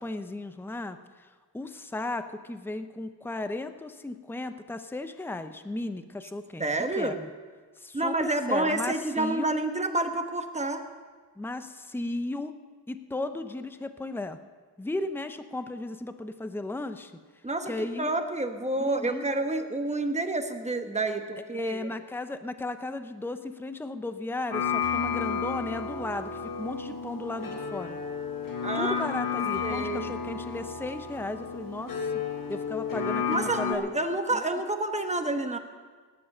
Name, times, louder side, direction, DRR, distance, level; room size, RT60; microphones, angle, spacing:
voice 1, 0.0-1.3 1.5-6.6 7.0-7.3 7.8-9.5 11.4-12.5 12.9-14.4 14.8-17.1 17.7-18.1 18.8-19.3 21.5-28.0 28.7-32.1 32.5-34.0 34.3-34.4, left 2 dB, 5° left, 9 dB, 0.6 m, -35 dB
voice 2, 6.6-7.2 7.9-10.8 17.4-21.9 28.6-29.1 29.6-30.1 33.3-35.6, right 2 dB, 15° right, 5 dB, 1.1 m, -29 dB
sound 1, 24.5-33.7, left 6 dB, 55° left, 1.7 m, -32 dB
17.5 x 9.8 x 6.6 m, 1.5 s
wide cardioid pair, 125°, 41 cm